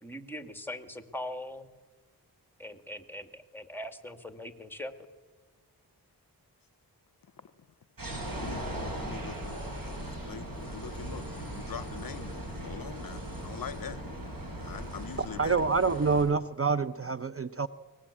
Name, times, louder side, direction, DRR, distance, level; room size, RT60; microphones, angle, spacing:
voice 1, 0.0-1.7 2.6-4.9, left 1 dB, 5° left, 7 dB, 2.3 m, -41 dB
sound 1, 8.0-16.2, right 1 dB, 55° right, 6.9 m, -38 dB
voice 2, 8.4-14.0 14.6-15.6, left 7 dB, 55° left, 16 dB, 0.7 m, -43 dB
voice 3, 15.4-17.7, right 4 dB, 35° right, 11 dB, 0.7 m, -27 dB
22.0 x 20.0 x 8.6 m, 1.2 s
cardioid pair, 55°, 40 cm